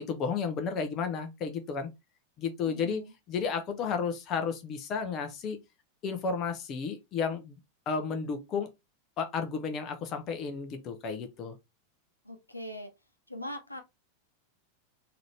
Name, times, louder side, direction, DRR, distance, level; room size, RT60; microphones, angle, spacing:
voice 1, 0.0-1.9 2.4-3.0 3.3-5.6 6.0-7.6 7.9-8.7 9.2-11.5, left 5 dB, 35° left, 0.8 m, -32 dB
voice 2, 2.7-3.1 12.2-12.9 13.3-13.8, left 1 dB, 85° left, 0.9 m, -41 dB
3.8 x 2.8 x 3.2 m
figure-of-eight pair, 90°, 0 cm